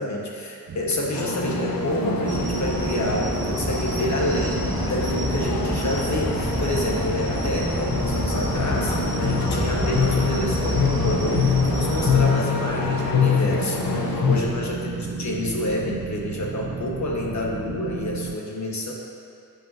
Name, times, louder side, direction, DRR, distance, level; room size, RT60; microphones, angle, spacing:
voice 1, 0.0-18.9, left 1 dB, 50° left, -1 dB, 1.2 m, -28 dB
sound 1, 0.7-18.4, right 5 dB, 45° right, 0.4 m, -35 dB
sound 2, 1.1-14.4, left 5 dB, 65° left, 0.8 m, -26 dB
sound 3, 2.2-12.2, equal, 20° right, 1.7 m, -28 dB
14.5 x 5.3 x 2.7 m, 2.6 s
wide cardioid pair, 145°, 37 cm